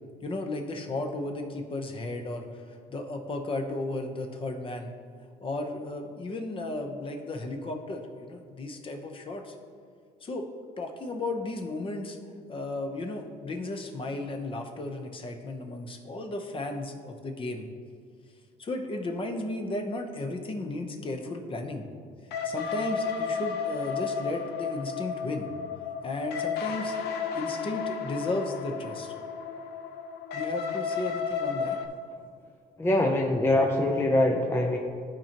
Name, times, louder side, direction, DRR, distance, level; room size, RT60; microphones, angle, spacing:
voice 1, 0.2-2.6 2.9-4.9 5.4-9.5 10.2-10.5 10.8-12.2 12.5-17.7 18.6-21.9 22.4-25.5 26.0-27.0 27.3-29.1 30.3-31.8, left 2 dB, 30° left, 4 dB, 0.9 m, -34 dB
sound 1, 22.3-31.9, left 6 dB, 75° left, 0.7 m, -33 dB
voice 2, 32.8-34.8, left 1 dB, 15° left, 1 dB, 0.5 m, -23 dB
13.0 x 4.5 x 2.9 m, 2.1 s
cardioid pair, 110°, 17 cm